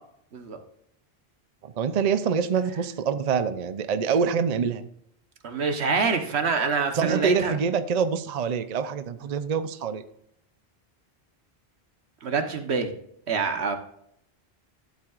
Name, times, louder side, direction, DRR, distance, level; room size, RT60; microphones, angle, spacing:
voice 1, 1.6-4.9 6.9-10.0, right 6 dB, 45° right, 11 dB, 0.6 m, -25 dB
voice 2, 5.4-7.6 12.2-12.9 13.3-13.8, right 5 dB, 85° right, 7 dB, 1.4 m, -26 dB
12.5 x 7.4 x 2.5 m, 0.72 s
omnidirectional pair, 1.1 m